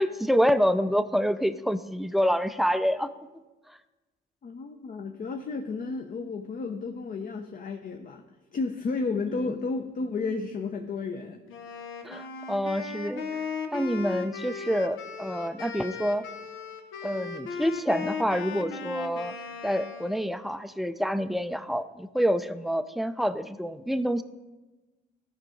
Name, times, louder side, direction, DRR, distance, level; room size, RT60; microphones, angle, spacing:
voice 1, 0.0-3.1 9.4-9.5 12.0-13.2 13.7-16.2 17.0-19.3 19.6-24.2, equal, ahead, 12 dB, 0.3 m, -27 dB
voice 2, 4.4-8.2 8.5-11.4, left 4 dB, 45° left, 4 dB, 0.6 m, -32 dB
Wind instrument woodwind instrument, 11.5-20.3, left 5 dB, 90° left, 0.8 m, -37 dB
13.5 x 5.0 x 3.8 m, 1.2 s
cardioid pair, 90°, 20 cm